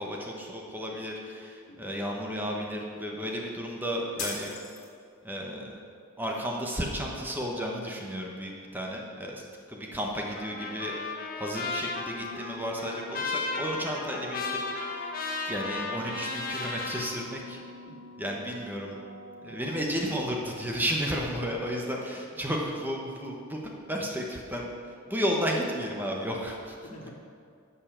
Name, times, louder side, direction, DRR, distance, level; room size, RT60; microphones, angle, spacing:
voice 1, 0.0-4.6 5.2-5.8 6.2-9.4 9.7-10.9 11.4-15.1 15.4-17.6 18.2-18.9 19.4-23.6 23.9-26.7, equal, 10° right, -1 dB, 1.1 m, -33 dB
voice 2, 1.7-2.1 9.9-10.2 17.6-18.3 20.9-21.2 26.8-27.1, equal, 80° left, -1 dB, 1.9 m, -51 dB
sound 1, 4.2-5.2, left 4 dB, 65° left, 2.6 m, -37 dB
Trumpet, 10.3-17.1, left 3 dB, 40° left, 1.3 m, -35 dB
sound 2, 12.2-21.9, left 1 dB, 40° right, 0.8 m, -47 dB
11.5 x 5.5 x 7.4 m, 2.3 s
head